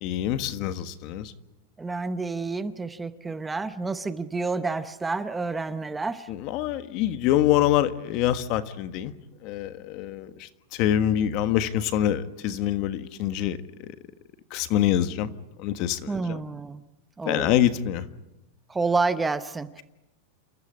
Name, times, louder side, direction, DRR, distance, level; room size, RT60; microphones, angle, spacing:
voice 1, 0.0-1.3 6.3-9.1 9.4-14.0 14.5-15.3 15.6-16.4 17.2-18.1, left 11 dB, 45° left, 11 dB, 1.4 m, -25 dB
voice 2, 1.8-6.3 16.1-16.8 17.2-17.6 18.7-19.8, right 3 dB, 10° right, 12 dB, 0.7 m, -29 dB
28.0 x 14.0 x 9.9 m, 0.95 s
supercardioid pair, 150°, 0 cm